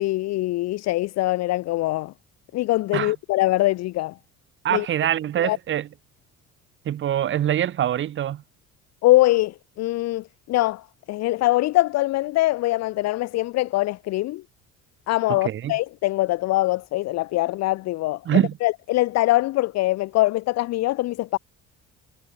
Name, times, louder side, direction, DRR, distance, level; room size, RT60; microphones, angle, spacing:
voice 1, 0.0-2.1 2.5-4.2 4.7-4.9 5.4-5.6 9.0-14.4 15.1-18.2 18.6-21.4, left 18 dB, 60° left, 0.5 m, -23 dB
voice 2, 4.6-5.9 6.8-8.4 15.3-15.7 18.3-18.6, right 11 dB, 40° right, 0.7 m, -24 dB
cardioid pair, 120°, 31 cm